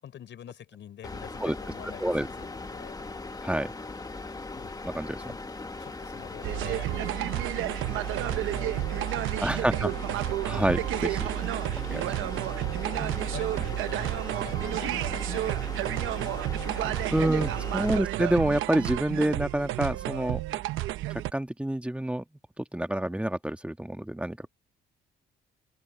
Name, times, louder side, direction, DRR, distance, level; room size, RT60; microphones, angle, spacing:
voice 1, 0.0-3.0 4.5-4.7 5.2-5.4 5.8-7.3 7.7-10.3 12.9-16.5 16.7-17.6 17.9-18.0, left 10 dB, 65° left, 6.1 m, -47 dB
sound 1, 1.0-18.0, left 3 dB, 20° left, 1.9 m, -39 dB
voice 2, 4.8-5.2 9.4-9.9 10.4-11.3 11.9-12.3 17.1-20.6 21.1-22.2 22.6-24.5, right 1 dB, 5° right, 1.7 m, -28 dB
sound 2, 6.4-21.3, right 15 dB, 90° right, 0.9 m, -30 dB
open air
cardioid pair, 90°, 20 cm